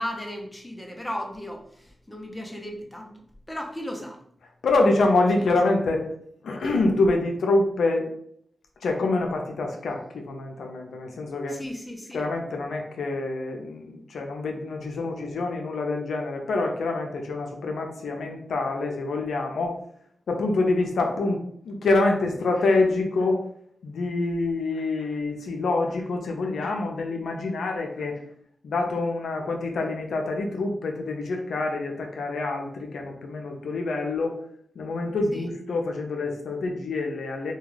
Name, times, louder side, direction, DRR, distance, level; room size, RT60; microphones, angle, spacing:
voice 1, 0.0-3.1 3.5-4.2 11.5-12.3 35.3-35.5, left 1 dB, 10° left, 2 dB, 0.6 m, -35 dB
voice 2, 4.6-6.0 6.4-8.1 8.8-11.6 12.1-19.8 20.3-23.4 23.8-28.1 28.6-34.4 34.8-37.5, left 2 dB, 85° left, 2 dB, 0.4 m, -26 dB
2.3 x 2.2 x 3.1 m, 0.67 s
cardioid pair, 60°, 0 cm